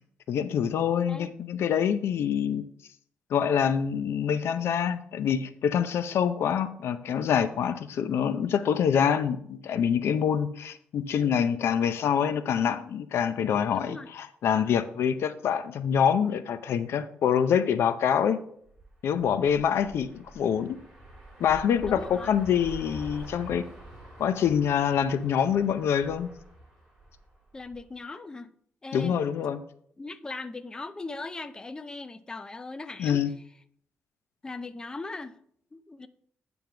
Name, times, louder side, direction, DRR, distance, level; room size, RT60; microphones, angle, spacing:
voice 1, 0.3-2.6 3.3-18.4 19.0-20.8 21.4-23.7 24.2-26.3 28.9-29.6 33.0-33.3, left 8 dB, 75° left, 11 dB, 0.6 m, -26 dB
voice 2, 13.7-14.1 19.9-20.0 21.8-22.4 27.5-28.5 28.8-29.2 30.0-33.2 34.4-35.4 35.7-36.1, left 3 dB, 15° left, 10 dB, 0.4 m, -39 dB
sound 1, 18.7-27.9, right 2 dB, 10° right, 3.1 m, -46 dB
9.4 x 3.5 x 5.8 m, 0.66 s
wide cardioid pair, 145°, 4 cm